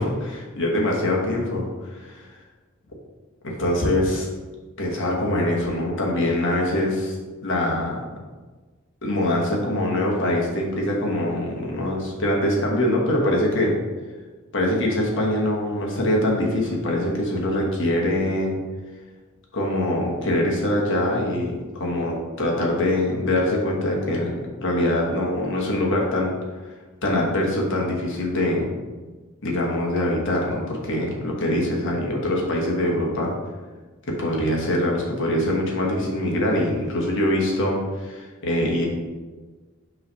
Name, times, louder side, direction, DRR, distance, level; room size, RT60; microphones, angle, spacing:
voice 1, 0.0-2.3 3.4-4.3 4.8-7.1 7.4-8.0 9.0-13.7 14.5-18.5 19.5-26.3 27.0-28.7 29.4-33.3 34.1-38.9, left 1 dB, 60° left, -1 dB, 1.3 m, -23 dB
5.5 x 3.3 x 5.4 m, 1.3 s
head